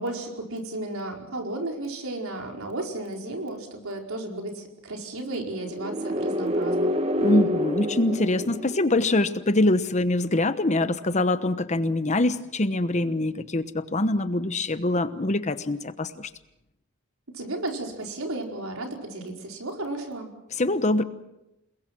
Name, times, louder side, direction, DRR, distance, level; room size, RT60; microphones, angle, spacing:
voice 1, 0.0-6.9 17.3-20.3, right 2 dB, 80° right, 2 dB, 4.8 m, -33 dB
sound 1, 5.6-9.4, equal, 30° right, 1.6 m, -27 dB
voice 2, 7.2-16.3 20.5-21.0, left 2 dB, 35° left, 12 dB, 1.0 m, -24 dB
29.0 x 21.5 x 6.1 m, 0.92 s
head